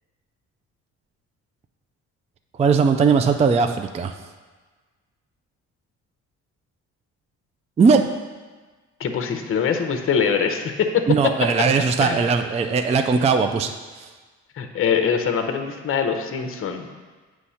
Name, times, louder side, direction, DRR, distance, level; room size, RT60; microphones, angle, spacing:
voice 1, 2.6-4.1 7.8-8.0 11.1-14.1, right 5 dB, 20° right, 7 dB, 0.3 m, -19 dB
voice 2, 9.0-11.3 12.0-12.2 14.6-16.9, left 7 dB, 45° left, 5 dB, 0.7 m, -23 dB
8.1 x 3.2 x 5.6 m, 1.4 s
cardioid pair, 90°, 30 cm